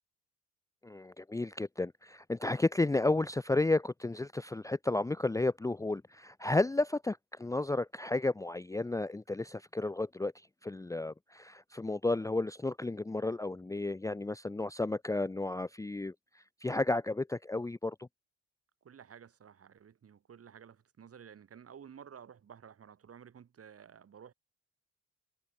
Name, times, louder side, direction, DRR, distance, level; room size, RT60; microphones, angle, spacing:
voice 1, 0.8-10.3 10.6-16.1 16.6-18.1, left 2 dB, 10° left, 0.7 m, -32 dB
voice 2, 18.8-24.3, right 8 dB, 50° right, 3.9 m, -53 dB
cardioid pair, 90°, 30 cm